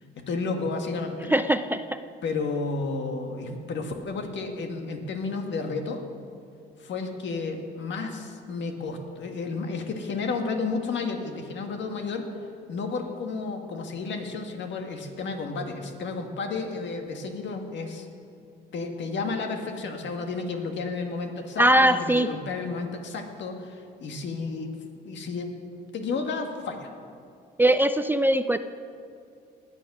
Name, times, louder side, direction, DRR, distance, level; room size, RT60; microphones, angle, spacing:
voice 1, 0.2-1.3 2.2-6.0 6.8-12.3 12.7-18.1 18.7-24.8 25.1-25.5 25.9-26.9, left 4 dB, 65° left, 4 dB, 1.7 m, -32 dB
voice 2, 1.3-2.0 21.6-22.3 27.6-28.6, right 1 dB, 10° right, 10 dB, 0.4 m, -21 dB
19.0 x 7.4 x 6.1 m, 2.4 s
cardioid pair, 90°, 20 cm